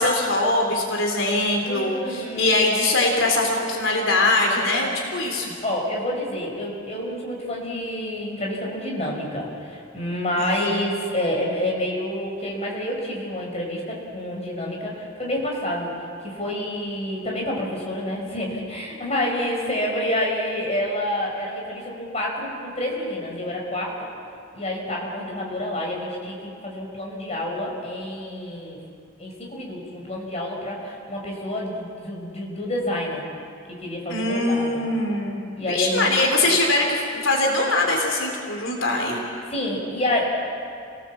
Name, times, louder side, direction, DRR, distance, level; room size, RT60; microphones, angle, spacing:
voice 1, 0.0-5.5 10.4-10.7 34.1-35.4 35.7-39.2, left 2 dB, 85° left, 1 dB, 3.7 m, -22 dB
voice 2, 1.6-2.6 5.6-16.0 16.2-23.9 24.5-26.4 26.6-28.8 29.2-33.2 33.7-34.8 35.6-36.6 39.5-40.2, left 1 dB, 35° left, -1 dB, 5.4 m, -28 dB
30.0 x 18.5 x 7.4 m, 2.4 s
head